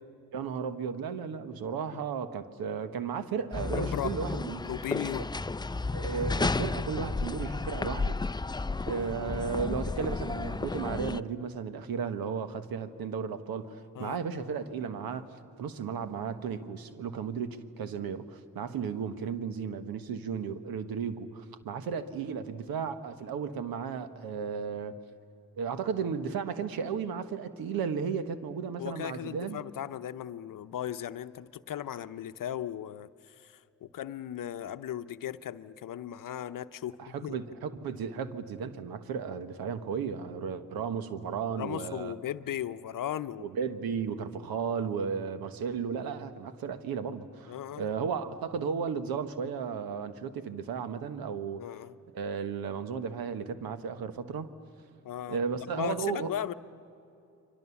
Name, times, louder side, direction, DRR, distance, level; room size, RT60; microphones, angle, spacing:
voice 1, 0.3-4.7 5.2-5.3 5.9-8.2 8.8-15.3 15.6-24.9 25.6-29.6 37.0-42.1 43.4-51.7 52.1-54.5 55.3-56.3, right 6 dB, 75° right, 11 dB, 1.4 m, -34 dB
sound 1, 3.5-11.2, left 3 dB, 10° left, 0.5 m, -32 dB
voice 2, 3.7-4.1 4.6-5.3 13.9-14.2 28.8-37.4 41.6-43.5 47.5-47.9 51.6-52.0 55.0-56.5, left 10 dB, 65° left, 12 dB, 0.8 m, -37 dB
30.0 x 23.5 x 7.1 m, 2.7 s
supercardioid pair, 50°, 36 cm